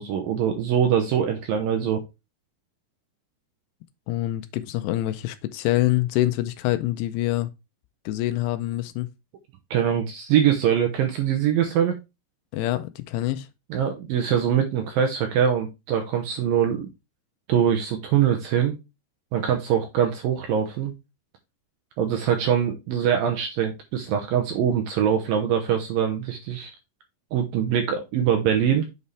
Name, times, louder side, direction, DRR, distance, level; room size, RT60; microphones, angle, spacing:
voice 1, 0.0-2.0 9.7-12.0 13.7-16.9 17.5-18.8 19.3-20.9 22.0-26.7 27.3-28.9, right 9 dB, 75° right, 2.2 m, -23 dB
voice 2, 4.1-7.5 8.1-9.1 12.5-13.5, left 15 dB, 80° left, 2.6 m, -25 dB
7.8 x 5.4 x 3.3 m
omnidirectional pair, 5.1 m